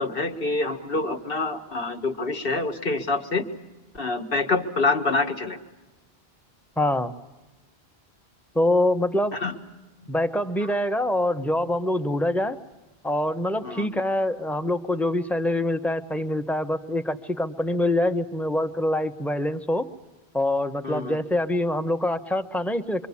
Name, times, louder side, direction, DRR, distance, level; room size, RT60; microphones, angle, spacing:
voice 1, 0.0-3.4 3.9-5.6 9.3-9.6 10.6-10.7 13.6-13.9 20.8-21.2, left 3 dB, 60° left, 5 dB, 2.0 m, -26 dB
voice 2, 6.8-7.1 8.5-9.4 10.1-12.6 13.0-19.8 20.3-23.1, left 1 dB, ahead, 8 dB, 0.9 m, -25 dB
26.0 x 24.5 x 8.5 m, 1.1 s
omnidirectional pair, 1.1 m